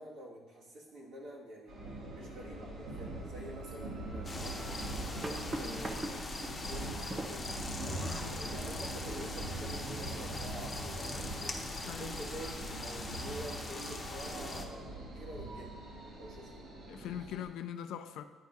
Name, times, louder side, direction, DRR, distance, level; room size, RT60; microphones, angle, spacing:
voice 1, 0.0-1.7 2.1-4.9 5.2-6.2 6.6-7.5 8.2-15.9 16.2-16.7, right 1 dB, 90° right, -6 dB, 1.9 m, -47 dB
sound 1, 1.7-17.4, right 1 dB, 70° right, 1.5 m, -42 dB
Washing Dishes, 3.7-3.8 4.5-6.6 7.1-7.5 8.0-8.2, right 2 dB, 20° right, 0.5 m, -41 dB
sound 2, 4.2-14.6, left 2 dB, 20° left, 0.7 m, -42 dB
voice 2, 16.9-18.2, left 9 dB, 80° left, 9 dB, 0.4 m, -41 dB
10.5 x 4.6 x 2.7 m, 1.4 s
cardioid pair, 160°, 0 cm